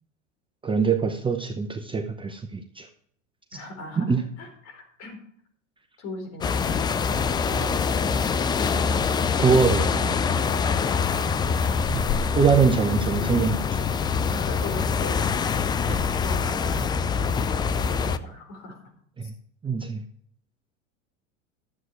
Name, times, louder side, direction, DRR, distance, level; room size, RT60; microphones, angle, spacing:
voice 1, 0.6-2.9 4.0-4.2 7.5-7.6 9.4-10.3 11.9-12.0 12.3-13.8 15.9-16.0 19.2-19.3 19.6-20.0, right 5 dB, 15° right, 6 dB, 0.8 m, -23 dB
voice 2, 3.5-5.2 6.0-8.3 14.3-15.6 15.8-18.8 19.2-19.3, left 2 dB, 45° left, 4 dB, 4.5 m, -40 dB
sound 1, 6.4-18.2, left 6 dB, 15° left, 0.3 m, -25 dB
12.5 x 8.0 x 4.6 m, 0.65 s
hypercardioid pair, 105°, 37 cm